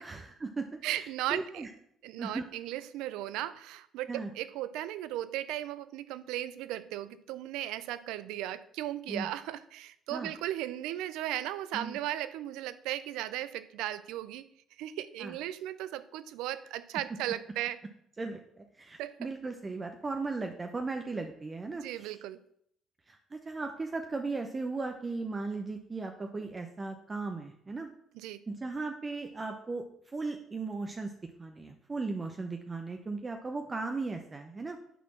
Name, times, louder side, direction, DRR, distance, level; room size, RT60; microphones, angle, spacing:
voice 1, 0.0-0.7 1.3-1.7 2.2-2.5 4.1-4.3 9.1-9.3 10.1-10.3 11.7-12.0 15.2-15.3 18.2-22.1 23.1-27.9 28.5-31.1 31.4-34.8, right 3 dB, 30° right, 4 dB, 0.8 m, -37 dB
voice 2, 0.8-1.7 2.0-14.5 14.8-17.8 19.0-19.3 21.7-22.4 28.1-28.4, right 13 dB, 80° right, 15 dB, 0.4 m, -36 dB
9.2 x 4.3 x 5.7 m, 0.70 s
supercardioid pair, 65°, 0 cm